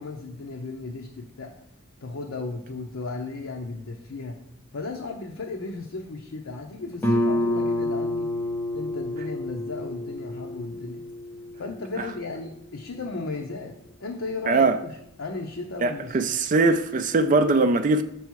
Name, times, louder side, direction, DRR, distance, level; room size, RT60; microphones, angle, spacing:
voice 1, 0.0-1.5 2.0-4.4 4.7-8.3 8.7-11.0 11.6-16.3, left 3 dB, 70° left, 0.7 m, -35 dB
Guitar, 7.0-12.4, left 1 dB, 10° left, 0.8 m, -28 dB
voice 2, 14.5-14.8 15.8-18.0, right 3 dB, 40° right, 0.3 m, -21 dB
6.9 x 4.6 x 4.6 m
head